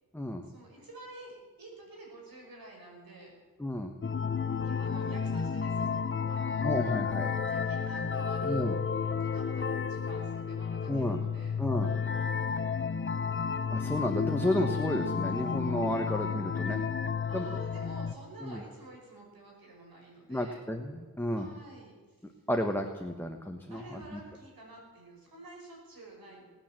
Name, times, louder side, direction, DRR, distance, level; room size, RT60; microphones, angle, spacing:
voice 1, 0.4-3.3 4.4-6.0 6.3-6.9 7.5-8.7 9.2-11.6 17.3-20.6 21.3-22.4 23.7-26.4, right 2 dB, 75° right, -1 dB, 5.8 m, -50 dB
voice 2, 3.6-3.9 6.6-7.3 8.4-8.8 10.9-11.2 11.6-11.9 13.7-16.8 17.3-17.6 18.4-18.6 20.3-21.5 22.5-24.2, left 1 dB, 5° left, 4 dB, 1.3 m, -32 dB
sound 1, 4.0-18.1, left 6 dB, 35° left, 0.8 m, -32 dB
19.0 x 9.3 x 7.6 m, 1.5 s
cardioid pair, 70°, 36 cm